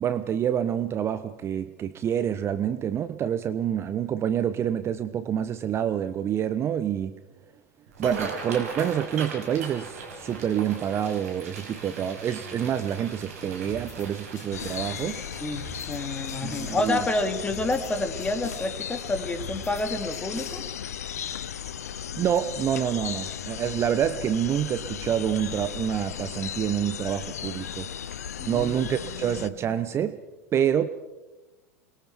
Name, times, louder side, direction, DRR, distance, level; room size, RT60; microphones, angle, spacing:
voice 1, 0.0-7.2 8.0-15.2 16.4-17.0 22.1-27.9 28.5-30.2 30.5-30.9, right 9 dB, 30° right, 12 dB, 0.9 m, -27 dB
sound 1, 7.9-21.0 21.5-21.7 22.1-22.5 22.9-23.0 24.3-24.5 24.8-24.9 25.4-25.5, right 3 dB, 65° right, 5.6 m, -41 dB
sound 2, 13.6-14.1 14.4-16.0 16.3-16.8 17.5-17.9 18.2-18.7 19.4-19.8 20.1-20.6, left 2 dB, 40° left, 5.0 m, -43 dB
sound 3, 14.5-29.5, left 9 dB, 70° left, 0.7 m, -36 dB
voice 2, 15.4-20.6 28.4-29.4, left 2 dB, 15° left, 7 dB, 2.7 m, -29 dB
28.5 x 22.0 x 4.6 m, 1.1 s
figure-of-eight pair, 80°, 9 cm